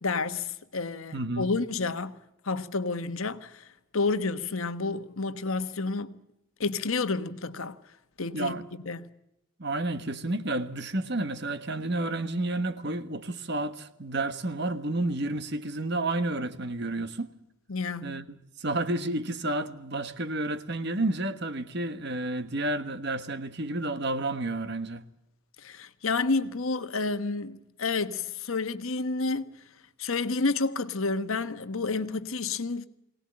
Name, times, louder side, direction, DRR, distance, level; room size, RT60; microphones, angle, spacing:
voice 1, 0.0-2.2 2.4-3.7 3.9-6.1 6.6-7.8 8.2-8.6 8.8-9.1 17.7-18.2 25.6-29.5 30.0-32.9, left 3 dB, 75° left, 1.2 m, -30 dB
voice 2, 1.1-1.5 8.3-8.6 9.6-17.3 18.0-25.0, right 2 dB, 50° right, 1.3 m, -31 dB
22.5 x 18.5 x 8.7 m
head